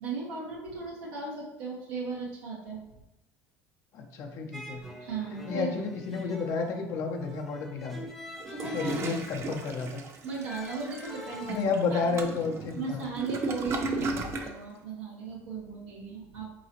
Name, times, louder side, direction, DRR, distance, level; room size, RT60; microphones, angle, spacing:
voice 1, 0.0-2.8 5.0-5.7 8.5-9.2 10.2-11.6 11.9-12.1 12.7-16.5, right 4 dB, 85° right, -5 dB, 0.8 m, -36 dB
voice 2, 3.9-4.8 5.4-8.1 8.6-10.0 11.5-13.1, left 4 dB, 60° left, 2 dB, 0.6 m, -31 dB
sound 1, 4.5-11.7, left 2 dB, ahead, 0.7 m, -44 dB
Toilet flush, 8.4-14.6, right 3 dB, 45° right, 0.5 m, -36 dB
3.9 x 2.9 x 2.8 m, 0.93 s
supercardioid pair, 90°, 6 cm